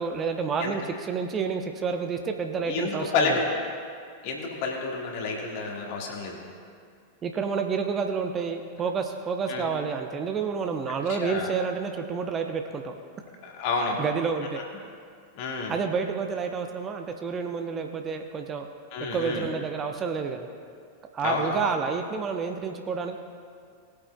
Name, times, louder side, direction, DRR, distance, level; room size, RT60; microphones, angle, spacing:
voice 1, 0.0-3.4 7.2-12.9 14.0-14.6 15.7-18.7 19.0-20.5 21.1-23.2, right 5 dB, 25° right, 5 dB, 0.8 m, -29 dB
voice 2, 2.7-3.5 4.2-6.5 9.5-9.7 11.2-11.5 13.4-14.0 15.4-15.7 18.9-19.5 21.2-21.6, left 4 dB, 45° left, 0 dB, 1.8 m, -29 dB
20.5 x 8.5 x 2.3 m, 2.3 s
figure-of-eight pair, 90°, 0 cm